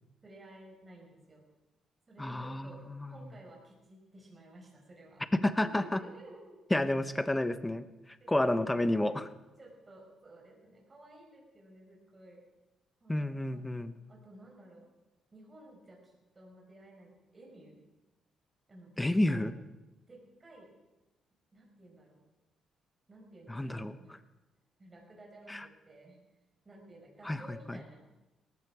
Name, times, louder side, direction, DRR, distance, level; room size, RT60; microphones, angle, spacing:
voice 1, 0.2-1.4 2.1-5.2 5.6-6.6 7.1-7.2 8.2-9.1 9.6-12.4 13.0-14.9 15.3-17.8 18.7-19.5 20.1-20.7 21.5-22.2 23.1-24.2 24.8-26.2 26.6-28.1, right 1 dB, 25° right, -1 dB, 5.4 m, -54 dB
voice 2, 2.2-3.1 5.3-6.0 6.7-7.8 8.3-9.3 13.1-13.9 19.0-19.5 23.5-24.0 25.5-25.7 27.2-27.4 27.7-27.8, left 1 dB, 10° left, 12 dB, 1.1 m, -30 dB
18.5 x 14.5 x 4.9 m, 1.0 s
cardioid pair, 90°, 0 cm